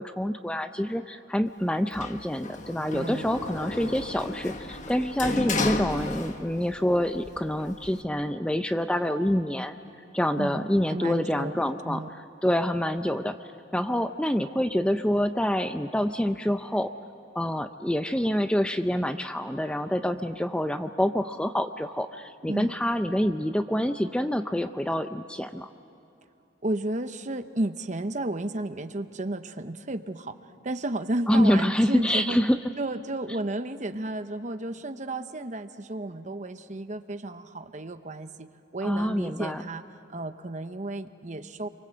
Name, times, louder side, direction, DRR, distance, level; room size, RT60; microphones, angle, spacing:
voice 1, 0.0-9.8 10.1-12.0 12.4-13.4 13.7-16.9 17.3-25.7 31.3-32.6 38.8-39.6, equal, 5° left, 8 dB, 0.5 m, -26 dB
Sliding door, 1.9-6.8 7.1-8.0, left 2 dB, 40° left, 1.3 m, -33 dB
voice 2, 2.9-3.3 10.4-12.1 22.5-22.7 26.6-30.4 30.6-32.4 32.8-38.5 38.7-39.8 40.1-41.7, right 1 dB, 40° right, 9 dB, 0.9 m, -33 dB
29.0 x 24.0 x 7.8 m, 2.9 s
head